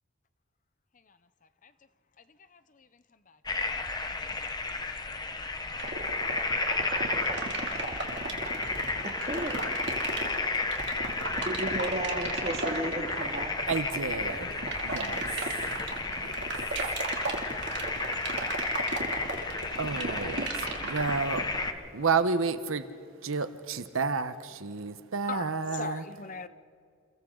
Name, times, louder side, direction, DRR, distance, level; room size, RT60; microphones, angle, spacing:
voice 1, 2.5-2.9 3.3-3.4 3.8-3.9 25.3-26.5, left 5 dB, 35° left, 12 dB, 0.7 m, -40 dB
sound 1, 3.5-21.7, left 3 dB, 20° left, 1.0 m, -33 dB
sound 2, 5.8-21.7, right 3 dB, 55° right, 2.8 m, -34 dB
voice 2, 9.0-9.7 11.5-13.5, right 1 dB, 30° right, 2 dB, 2.3 m, -34 dB
voice 3, 13.7-15.6 15.9-16.5 16.8-16.9 19.8-21.5 21.9-22.9 23.2-26.0, right 4 dB, 75° right, 11 dB, 1.0 m, -31 dB
29.5 x 29.5 x 3.9 m, 2.2 s
head